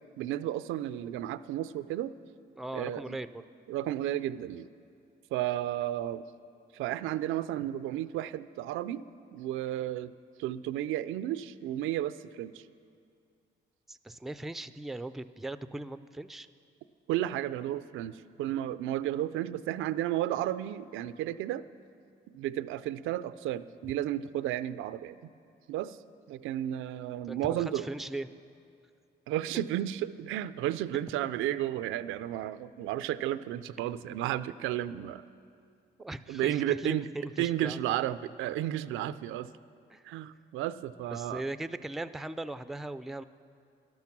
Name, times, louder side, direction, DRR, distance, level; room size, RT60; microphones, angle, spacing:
voice 1, 0.2-2.1 2.7-3.2 3.7-4.7 5.3-6.2 6.7-9.0 9.3-10.1 10.4-12.6 17.1-21.6 22.3-25.1 25.7-26.0 26.3-27.9 29.3-35.2 36.3-37.1 37.4-39.5 40.1-41.4, right 12 dB, 90° right, 14 dB, 0.4 m, -33 dB
voice 2, 2.6-3.4 13.9-16.5 27.3-28.3 36.0-37.8 39.9-40.0 41.1-43.2, right 1 dB, ahead, 13 dB, 0.3 m, -39 dB
12.0 x 12.0 x 6.0 m, 2.3 s
cardioid pair, 90°, 20 cm